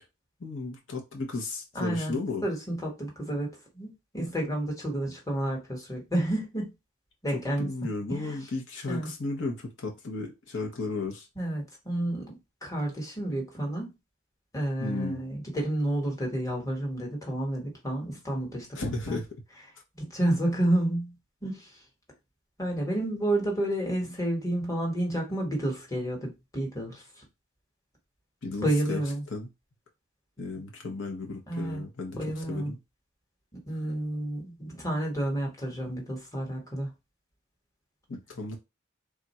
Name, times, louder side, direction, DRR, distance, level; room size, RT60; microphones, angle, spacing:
voice 1, 0.4-2.4 7.3-11.3 14.8-15.2 18.7-19.3 28.4-29.0 29.3-29.5 30.4-32.8 38.1-38.6, left 3 dB, 70° left, 1.0 m, -34 dB
voice 2, 1.7-6.7 7.2-7.7 8.1-8.4 8.9-9.1 11.4-12.4 12.6-13.9 14.5-19.2 19.9-21.1 21.4-21.7 22.6-27.0 28.6-29.2 31.5-31.8 32.2-32.7 33.7-36.9, right 1 dB, 15° left, 1.2 m, -30 dB
3.6 x 2.5 x 4.2 m
head